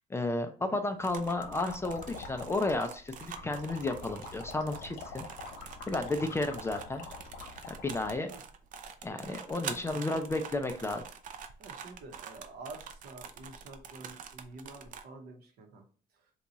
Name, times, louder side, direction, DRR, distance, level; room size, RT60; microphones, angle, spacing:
voice 1, 0.1-5.3 5.9-7.1 7.6-8.3 9.0-11.0, left 2 dB, 15° left, 6 dB, 0.4 m, -32 dB
voice 2, 0.7-1.0 8.3-8.4 9.6-10.5 11.6-15.8 16.1-16.3, right 3 dB, 65° right, 4 dB, 0.9 m, -49 dB
sound 1, 1.0-15.0, right 7 dB, 50° right, 0.4 m, -46 dB
sound 2, 1.4-8.2, left 4 dB, 80° left, 0.9 m, -46 dB
2.8 x 2.3 x 3.9 m, 0.42 s
cardioid pair, 110°, 17 cm